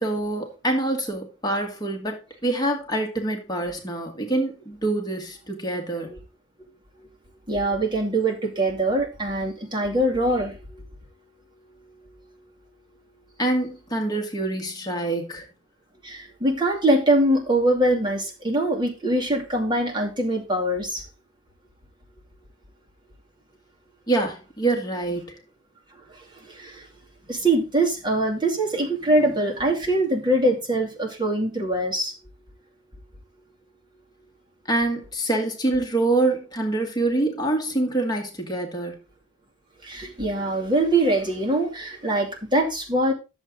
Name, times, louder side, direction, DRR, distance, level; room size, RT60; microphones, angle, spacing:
voice 1, 0.0-2.2 2.4-6.1 13.4-15.5 24.1-25.4 34.7-39.0, right 2 dB, 20° left, 1.9 m, -25 dB
voice 2, 7.5-10.8 16.0-21.0 26.1-26.9 27.3-32.1 39.8-43.1, right 1 dB, 20° right, 2.5 m, -23 dB
10.5 x 7.3 x 3.8 m
head